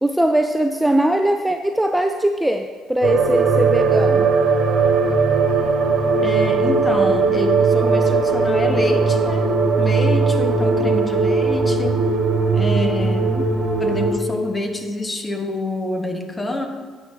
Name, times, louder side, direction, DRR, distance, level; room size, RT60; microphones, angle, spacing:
voice 1, 0.0-4.3 10.8-11.3 12.9-13.5, right 1 dB, 5° right, 5 dB, 0.5 m, -21 dB
sound 1, 3.0-14.1, right 4 dB, 60° right, 1.3 m, -18 dB
voice 2, 6.2-12.0 12.5-13.3 13.8-16.7, left 1 dB, 20° left, 5 dB, 1.2 m, -26 dB
10.0 x 7.5 x 3.7 m, 1.5 s
supercardioid pair, 65°, 0 cm